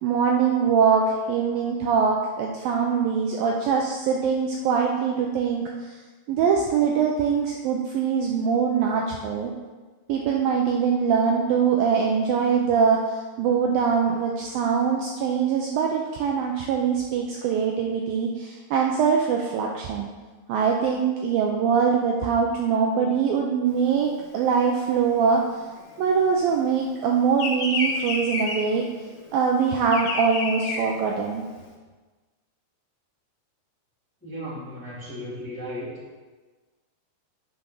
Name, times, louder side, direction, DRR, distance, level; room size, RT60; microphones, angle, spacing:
voice 1, 0.0-6.0 6.3-9.5 10.1-20.1 20.5-25.6 26.0-28.9 29.3-31.4, right 6 dB, 80° right, 0 dB, 2.1 m, -23 dB
Bird vocalization bird call bird song, 23.8-26.7 26.9-31.7, left 3 dB, 70° left, 3.2 m, -30 dB
voice 2, 34.2-35.9, equal, 5° left, -7 dB, 1.3 m, -35 dB
9.2 x 5.1 x 6.0 m, 1.3 s
omnidirectional pair, 4.8 m